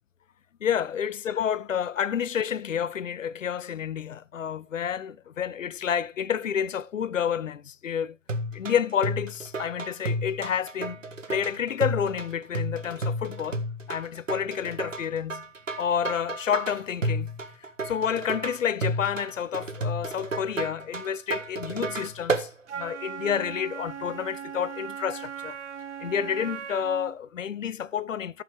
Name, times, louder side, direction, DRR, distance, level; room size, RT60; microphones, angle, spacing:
voice 1, 0.6-8.2 8.5-11.0 11.3-13.6 13.9-15.4 15.8-17.3 17.8-25.6 26.0-28.4, left 8 dB, 80° left, 0.6 m, -29 dB
sound 1, 8.3-22.5, right 1 dB, 85° right, 1.4 m, -32 dB
Wind instrument woodwind instrument, 22.7-27.2, right 8 dB, 65° right, 1.0 m, -38 dB
14.0 x 5.8 x 3.4 m
figure-of-eight pair, 135°, 38 cm